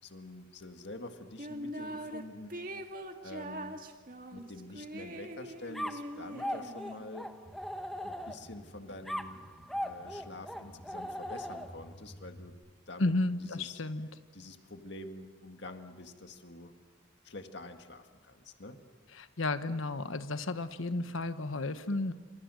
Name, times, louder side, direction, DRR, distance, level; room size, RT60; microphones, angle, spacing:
voice 1, 0.0-2.8 3.2-3.8 4.3-7.4 8.0-9.5 9.8-12.6 12.9-13.1 13.4-13.8 14.3-16.8 17.2-18.8, left 2 dB, 55° left, 6 dB, 1.9 m, -47 dB
sound 1, 1.4-2.2 2.5-7.2, right 1 dB, 45° right, 2.0 m, -42 dB
sound 2, 5.7-8.6 9.1-11.9, equal, ahead, 0.9 m, -39 dB
sound 3, 7.5-12.5, equal, 20° left, 6.2 m, -54 dB
voice 2, 13.0-14.1 19.2-22.1, left 2 dB, 85° left, 11 dB, 1.2 m, -32 dB
28.5 x 26.5 x 6.5 m, 1.4 s
head